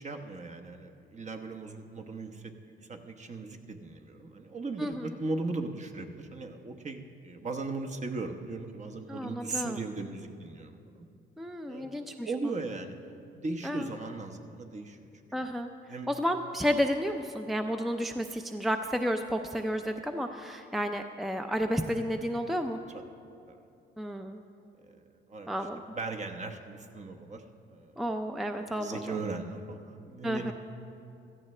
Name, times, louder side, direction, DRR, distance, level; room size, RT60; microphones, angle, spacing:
voice 1, 0.0-10.8 11.7-13.0 13.3-15.0 15.4-15.5 15.9-16.1 22.9-23.0 23.5-23.6 24.8-25.0 25.3-25.6 25.9-27.4 27.7-27.9 28.6-30.5, right 3 dB, 35° right, 4 dB, 1.0 m, -38 dB
voice 2, 4.8-5.1 9.1-9.8 11.4-12.5 13.6-13.9 15.3-15.7 16.1-22.8 24.0-24.4 25.5-25.8 28.0-29.2 30.2-30.5, equal, ahead, 6 dB, 0.5 m, -32 dB
16.5 x 14.0 x 3.3 m, 2.6 s
cardioid pair, 90°, 20 cm